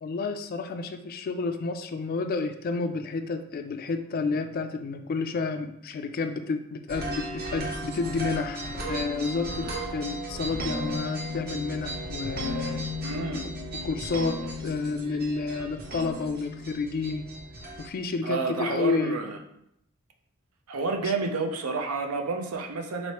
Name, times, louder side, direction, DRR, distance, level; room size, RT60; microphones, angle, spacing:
voice 1, 0.0-9.7 9.9-12.8 13.8-17.3 17.8-19.2 21.0-21.1, left 4 dB, 45° left, 8 dB, 0.3 m, -30 dB
sound 1, 6.9-17.9, equal, 45° right, 0.9 m, -35 dB
voice 2, 13.0-13.5 18.2-19.4 20.7-23.1, right 3 dB, 85° right, 4 dB, 0.6 m, -30 dB
4.1 x 3.1 x 2.9 m, 0.77 s
head